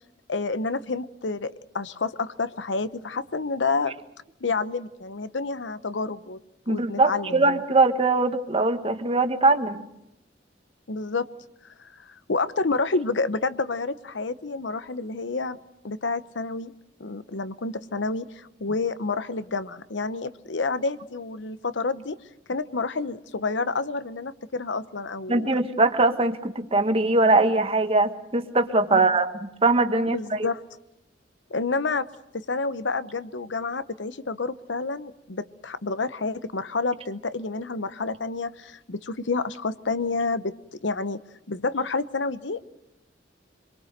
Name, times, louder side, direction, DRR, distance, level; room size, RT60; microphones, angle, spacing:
voice 1, 0.3-3.9 4.4-6.4 6.7-7.6 10.9-11.3 11.8-15.6 15.8-16.7 17.0-22.2 22.5-25.5 28.9-29.0 30.1-30.6 31.5-32.1 32.3-40.5 40.8-41.2 41.5-42.7, left 3 dB, 85° left, 13 dB, 0.9 m, -29 dB
voice 2, 6.7-9.8 25.3-29.3 29.6-30.5, right 3 dB, 35° right, 7 dB, 1.4 m, -21 dB
25.5 x 22.5 x 6.6 m, 0.84 s
head